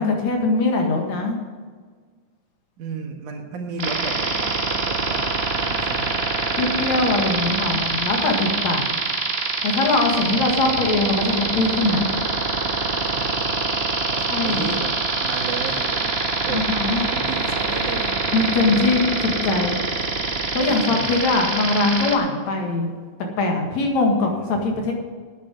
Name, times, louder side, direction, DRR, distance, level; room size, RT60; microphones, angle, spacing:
voice 1, 0.0-1.4 6.6-9.0 9.6-12.1 14.3-14.6 16.5-17.0 18.3-19.7 20.5-22.9 23.4-24.9, left 3 dB, 70° left, 2 dB, 3.0 m, -21 dB
voice 2, 2.8-5.3 5.5-6.2 10.2-10.7 13.0-13.5 14.1-14.9 15.2-16.1 16.5-18.3 18.7-18.8 20.0-21.0 21.6-21.7 24.2-24.8, right 4 dB, 85° right, 3 dB, 3.1 m, -34 dB
sound 1, 3.8-22.2, right 3 dB, 55° right, 0.6 m, -24 dB
9.6 x 9.5 x 7.8 m, 1.5 s
omnidirectional pair, 3.4 m